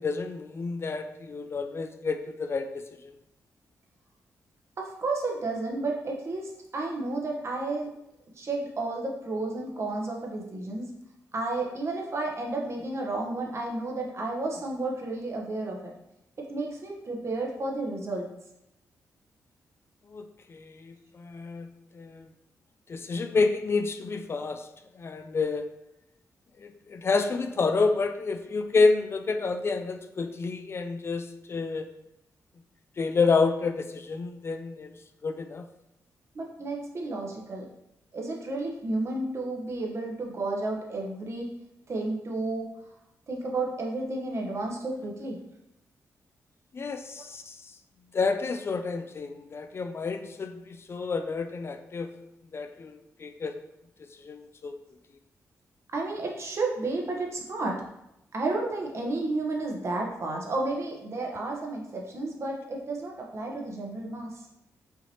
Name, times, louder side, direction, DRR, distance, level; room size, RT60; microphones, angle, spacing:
voice 1, 0.0-3.1 20.1-21.7 21.9-22.3 22.9-24.7 24.9-25.7 26.6-31.9 33.0-35.0 35.2-35.7 46.7-47.7 48.1-52.1 52.5-53.6 54.2-54.8, left 4 dB, 40° left, 7 dB, 0.3 m, -29 dB
voice 2, 4.8-7.9 8.4-10.9 11.3-15.9 16.4-18.3 36.3-37.7 38.1-41.5 41.9-42.7 43.3-45.4 55.9-57.8 58.3-64.4, right 2 dB, 50° right, 0 dB, 1.0 m, -32 dB
5.6 x 2.9 x 2.9 m, 0.85 s
cardioid pair, 80°, 6 cm